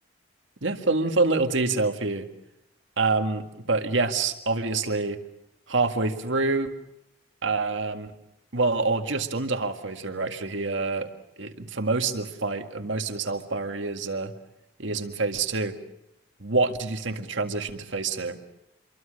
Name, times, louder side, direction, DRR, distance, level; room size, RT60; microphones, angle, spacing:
voice 1, 0.6-2.3 3.0-5.2 5.7-6.7 7.4-8.1 8.5-11.1 11.4-14.3 14.8-15.8 16.4-18.4, right 3 dB, 75° right, 6 dB, 1.9 m, -26 dB
27.0 x 23.5 x 6.6 m, 0.85 s
head